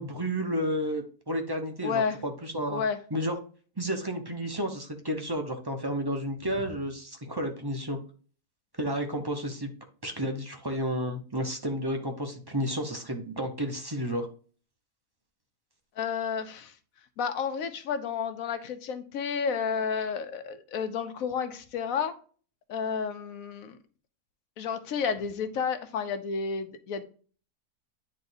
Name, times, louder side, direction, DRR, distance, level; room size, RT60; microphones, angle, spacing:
voice 1, 0.0-2.8 3.1-3.4 3.8-8.0 8.8-9.7 10.0-14.3, equal, 20° right, 0.6 m, -31 dB
voice 2, 1.8-2.2 2.7-3.0 16.0-16.7 17.2-22.2 22.7-23.8 24.6-27.0, left 6 dB, 65° left, 1.1 m, -31 dB
9.6 x 4.0 x 2.7 m
omnidirectional pair, 1.6 m